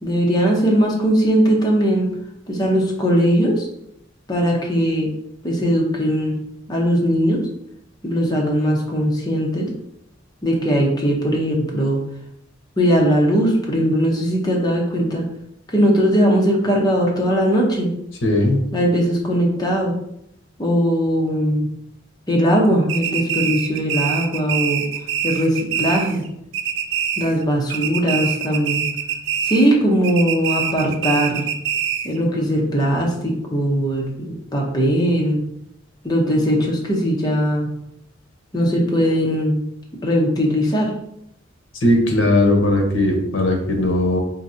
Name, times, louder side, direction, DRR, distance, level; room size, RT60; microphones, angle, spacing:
voice 1, 0.0-2.1 2.5-3.7 4.3-5.1 5.4-6.4 6.7-7.4 8.0-9.7 10.4-12.0 12.8-15.2 15.7-17.9 18.7-19.9 20.6-21.7 22.3-24.8 25.2-26.2 27.2-28.9 29.4-31.4 32.0-35.4 36.0-37.7 38.5-39.6 40.0-40.9, equal, 20° left, -2 dB, 0.7 m, -19 dB
voice 2, 18.2-18.6 41.8-44.2, left 1 dB, 70° left, 2 dB, 0.8 m, -18 dB
sound 1, 22.9-26.3 26.5-27.4 27.7-29.7 30.0-32.2, right 8 dB, 60° right, 0.4 m, -24 dB
4.5 x 2.6 x 2.6 m, 0.77 s
head